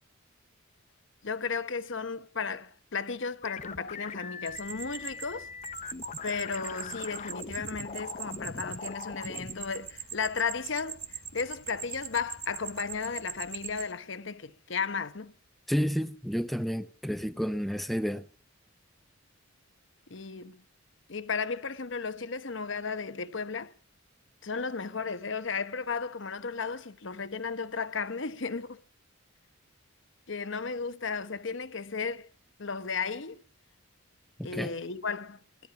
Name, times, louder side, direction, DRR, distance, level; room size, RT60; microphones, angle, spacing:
voice 1, 1.2-5.5 6.2-15.3 20.1-20.6 21.1-23.7 24.4-28.8 30.3-32.3 32.6-33.4 34.4-35.4, left 5 dB, 60° left, 0.9 m, -34 dB
sound 1, 3.4-9.5, left 5 dB, 35° left, 0.8 m, -41 dB
sound 2, 4.5-13.8, right 10 dB, 90° right, 2.7 m, -42 dB
voice 2, 15.7-18.3 34.4-34.7, equal, ahead, 0.7 m, -30 dB
19.5 x 12.5 x 5.9 m
head